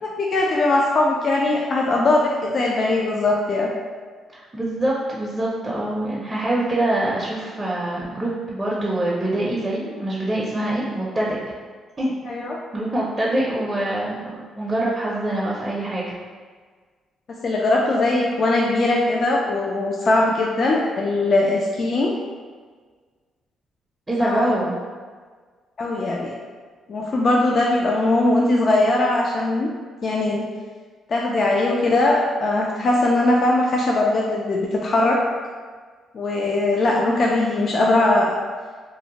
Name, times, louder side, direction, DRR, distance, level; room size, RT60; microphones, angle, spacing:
voice 1, 0.0-3.7 12.3-12.6 17.4-22.1 24.2-24.5 25.8-26.3 26.9-29.7 30.0-30.5 31.1-35.2 36.1-38.4, left 2 dB, 50° left, -2 dB, 0.3 m, -20 dB
voice 2, 4.3-11.4 12.0-12.1 12.7-16.1 24.1-24.7, right 1 dB, 15° right, -5 dB, 0.5 m, -24 dB
2.6 x 2.0 x 2.8 m, 1.5 s
cardioid pair, 90°, 0 cm